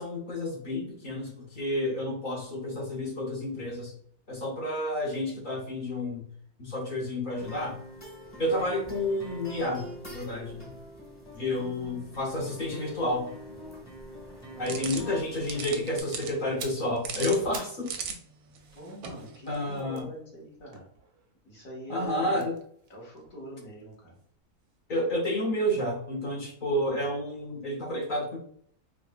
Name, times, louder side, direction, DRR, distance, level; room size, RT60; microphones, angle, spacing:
voice 1, 0.0-3.9 4.3-6.2 6.6-7.8 8.4-10.7 11.4-13.3 14.6-17.9 19.5-20.1 21.9-22.5 24.9-28.4, left 1 dB, 50° left, -2 dB, 0.6 m, -30 dB
sound 1, 7.3-16.0, right 1 dB, 20° left, 0.9 m, -45 dB
voice 2, 11.3-12.2 14.5-14.8 18.7-20.9 21.5-22.4 22.9-24.2, equal, 65° left, -4 dB, 1.8 m, -44 dB
sound 2, 14.7-19.8, right 6 dB, 85° right, 1.1 m, -40 dB
sound 3, 16.4-17.9 18.2-21.5 22.3-24.3 24.6-24.8, right 5 dB, 65° right, 0.7 m, -48 dB
4.4 x 2.1 x 2.3 m, 0.62 s
omnidirectional pair, 1.6 m